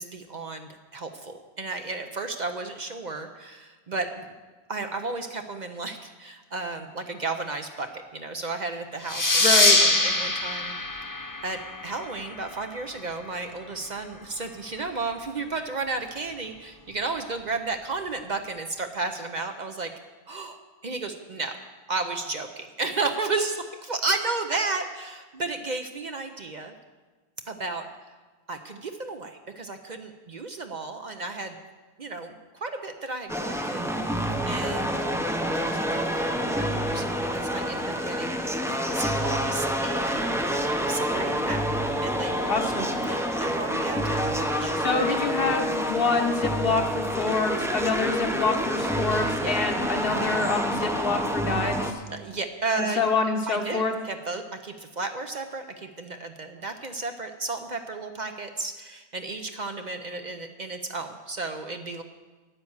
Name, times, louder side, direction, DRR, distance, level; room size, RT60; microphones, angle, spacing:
voice 1, 0.0-4.3 4.7-9.5 9.8-10.8 11.4-19.9 20.3-21.5 21.9-26.7 27.5-27.9 28.5-31.6 32.0-35.1 35.5-38.7 38.9-40.5 40.9-41.7 42.0-42.8 43.0-45.1 49.4-49.5 52.1-53.0 53.5-62.0, right 3 dB, 45° right, 6 dB, 0.8 m, -33 dB
sound 1, 9.1-12.3, left 2 dB, 20° left, 1.0 m, -23 dB
voice 2, 9.4-9.8 42.5-42.9 44.8-52.0 52.8-53.9, left 4 dB, 60° left, 4 dB, 1.3 m, -26 dB
sound 2, 33.3-51.9, equal, 5° right, 0.6 m, -28 dB
9.7 x 9.4 x 7.2 m, 1.3 s
omnidirectional pair, 1.1 m